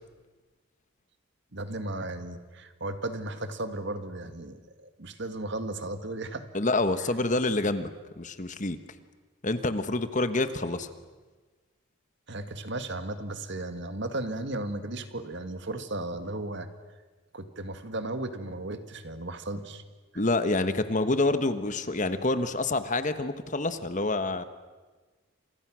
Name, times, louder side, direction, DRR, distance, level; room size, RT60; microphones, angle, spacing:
voice 1, 1.5-6.5 12.3-16.7 17.3-19.8, right 2 dB, 55° right, 9 dB, 1.9 m, -35 dB
voice 2, 6.5-7.9 8.2-8.8 9.4-10.9 20.1-24.4, left 2 dB, 35° left, 11 dB, 1.3 m, -27 dB
30.0 x 27.5 x 6.3 m, 1.3 s
head